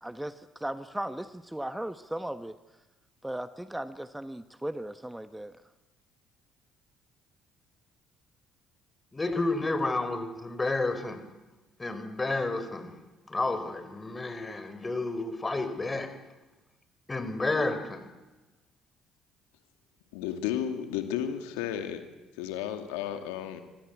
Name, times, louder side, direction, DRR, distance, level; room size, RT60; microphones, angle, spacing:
voice 1, 0.0-2.5 3.2-5.5, right 1 dB, 10° right, 11 dB, 1.2 m, -37 dB
voice 2, 9.1-11.2 11.8-12.9 13.3-16.1 17.1-18.1, left 2 dB, 20° left, 10 dB, 4.8 m, -30 dB
voice 3, 20.1-22.0 22.4-23.6, left 10 dB, 75° left, 7 dB, 2.3 m, -33 dB
26.5 x 25.0 x 8.3 m, 1.1 s
hypercardioid pair, 50°, 0 cm